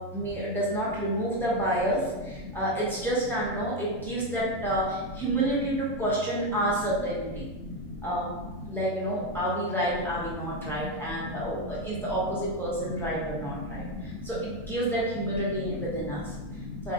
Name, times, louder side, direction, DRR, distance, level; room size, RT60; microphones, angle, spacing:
voice 1, 0.0-7.5 8.0-8.3 8.7-16.2 16.8-16.9, right 1 dB, 5° left, -7 dB, 0.4 m, -29 dB
voice 2, 7.6-8.4 10.5-11.7 12.9-14.2 15.6-16.9, left 2 dB, 85° right, -2 dB, 1.1 m, -38 dB
2.3 x 2.3 x 3.7 m, 1.1 s
omnidirectional pair, 1.4 m